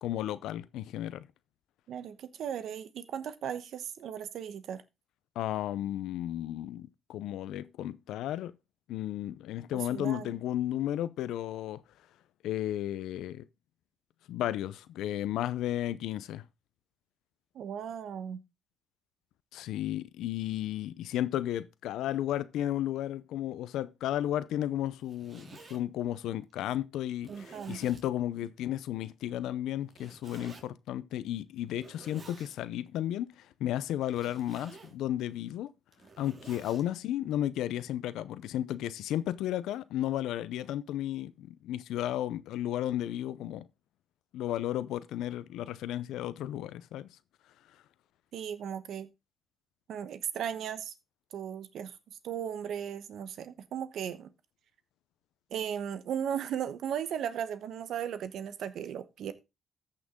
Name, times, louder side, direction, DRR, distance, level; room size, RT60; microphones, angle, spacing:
voice 1, 0.0-1.3 5.4-8.5 8.9-11.8 12.4-13.4 14.3-16.4 19.5-33.3 33.6-35.7 36.2-43.6 44.3-47.1, left 12 dB, 85° left, 0.6 m, -33 dB
voice 2, 1.9-4.8 9.7-10.3 17.5-18.4 27.3-27.9 48.3-49.1 49.9-50.9 51.3-52.0 52.2-54.3 55.5-59.3, right 9 dB, 70° right, 1.0 m, -36 dB
Zipper (clothing), 24.9-25.8 26.5-26.6 27.2-28.1 29.9-30.6 31.7-32.6 34.0-35.0 35.7-36.8, right 3 dB, 40° right, 2.7 m, -51 dB
14.0 x 6.0 x 3.7 m
cardioid pair, 90°, 0 cm